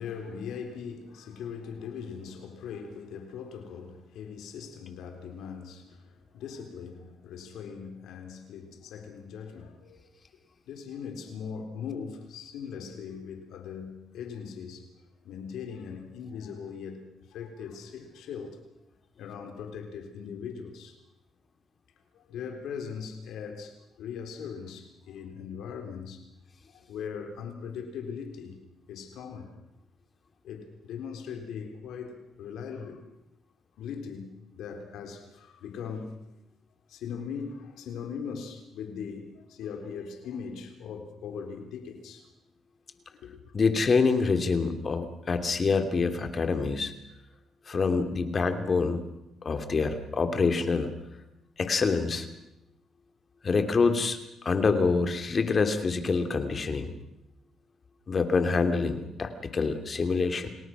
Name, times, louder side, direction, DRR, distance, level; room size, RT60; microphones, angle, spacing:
voice 1, 0.0-10.1 10.7-14.9 15.2-18.7 19.2-21.0 22.1-26.3 26.7-28.6 28.9-29.6 30.4-33.0 33.8-36.1 36.9-42.3 43.2-43.5, left 6 dB, 80° left, 4 dB, 3.9 m, -40 dB
voice 2, 43.5-46.9 47.7-49.0 49.4-50.9 51.6-52.3 53.4-54.2 54.4-56.9 58.1-60.5, left 4 dB, 40° left, 7 dB, 2.7 m, -26 dB
28.5 x 19.0 x 6.2 m, 0.87 s
cardioid pair, 90°, 0 cm